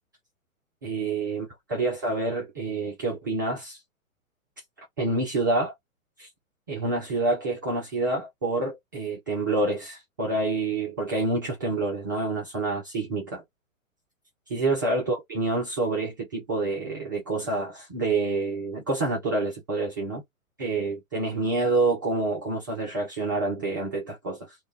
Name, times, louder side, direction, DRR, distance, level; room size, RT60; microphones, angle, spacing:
voice 1, 0.8-3.8 5.0-5.7 6.2-6.3 6.7-13.4 14.5-20.2 20.6-24.5, right 3 dB, 15° right, 0.4 m, -27 dB
2.1 x 2.1 x 3.4 m
figure-of-eight pair, 115°, 41 cm